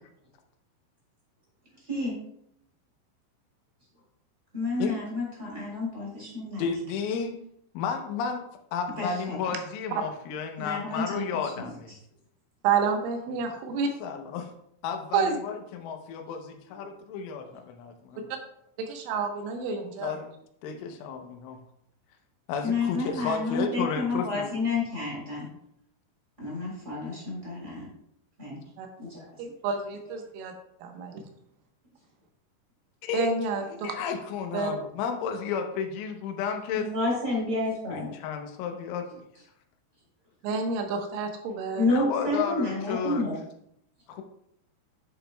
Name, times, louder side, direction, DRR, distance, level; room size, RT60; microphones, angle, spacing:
voice 1, 4.5-6.6 9.0-9.4 10.6-11.7 20.8-20.9 22.6-25.5 26.4-27.9 28.4-28.6 29.0-29.3 36.7-38.1 41.8-43.3, left 2 dB, 20° right, -3 dB, 2.7 m, -30 dB
voice 2, 6.6-7.4 7.7-8.4 8.7-11.9 13.3-13.4 14.0-14.5 14.8-18.2 20.0-20.3 20.6-21.6 22.5-24.5 33.0-33.3 33.7-36.9 37.9-39.2 41.9-43.2 44.1-44.2, left 6 dB, 85° left, 5 dB, 3.3 m, -32 dB
voice 3, 12.6-13.9 15.1-15.4 18.8-20.1 28.8-28.9 29.4-30.5 30.8-31.1 33.1-34.0 34.5-34.7 40.4-41.9, right 5 dB, 85° right, 4 dB, 3.6 m, -29 dB
10.5 x 7.9 x 2.2 m, 0.74 s
omnidirectional pair, 5.5 m